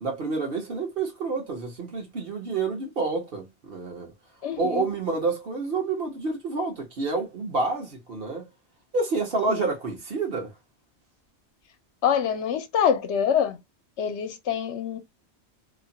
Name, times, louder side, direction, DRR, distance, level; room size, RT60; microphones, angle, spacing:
voice 1, 0.0-4.1 4.6-8.5 8.9-10.5, right 3 dB, 55° right, 1.3 m, -28 dB
voice 2, 4.4-4.9 9.5-9.7 12.0-13.6 14.0-15.0, left 8 dB, 80° left, 0.9 m, -25 dB
3.0 x 2.2 x 2.7 m
omnidirectional pair, 1.2 m